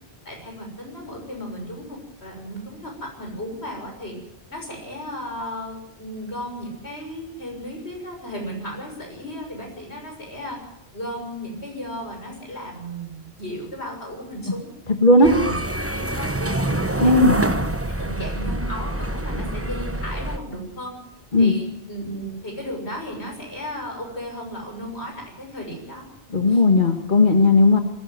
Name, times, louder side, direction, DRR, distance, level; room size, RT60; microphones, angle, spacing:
voice 1, 0.3-4.2 4.5-10.6 10.9-14.7 15.2-17.6 18.0-21.0 21.4-26.1 26.5-26.6, equal, 90° left, 1 dB, 7.0 m, -35 dB
voice 2, 15.0-15.3 17.0-17.3 21.3-21.5 26.3-27.8, left 2 dB, 50° left, 5 dB, 1.8 m, -15 dB
sound 1, 15.2-20.4, right 1 dB, 15° right, 1.0 m, -26 dB
20.5 x 16.0 x 9.3 m, 0.81 s
omnidirectional pair, 1.1 m